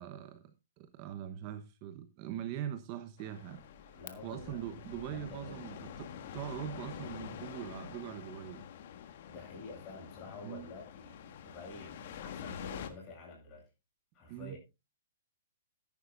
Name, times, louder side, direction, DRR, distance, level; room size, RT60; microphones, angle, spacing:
voice 1, 0.0-3.6 4.2-8.6 10.4-10.7 14.3-14.6, right 11 dB, 35° right, 1.0 m, -42 dB
sound 1, 3.2-12.9, left 8 dB, 55° left, 1.6 m, -47 dB
voice 2, 3.9-5.6 9.3-13.7 14.1-14.6, left 3 dB, 25° left, 7.9 m, -49 dB
14.5 x 10.5 x 2.6 m
hypercardioid pair, 155°, 0 cm